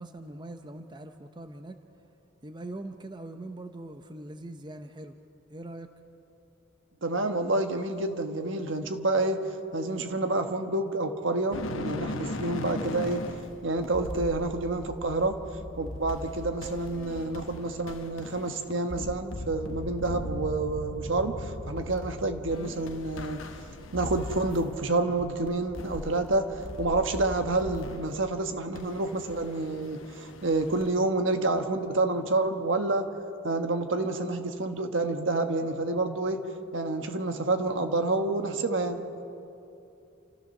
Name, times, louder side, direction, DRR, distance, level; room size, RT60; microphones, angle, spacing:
voice 1, 0.0-1.8 2.4-5.1 5.5-5.9, right 2 dB, 25° right, 7 dB, 0.7 m, -42 dB
voice 2, 7.0-9.4 9.7-13.2 13.6-15.4 15.8-23.4 23.9-33.1 33.4-36.4 36.7-39.0, right 2 dB, 70° right, 6 dB, 1.3 m, -28 dB
sound 1, 11.5-24.8 25.1-28.1 28.7-30.9, left 1 dB, 85° left, 1.3 m, -39 dB
29.0 x 14.0 x 6.6 m, 2.8 s
head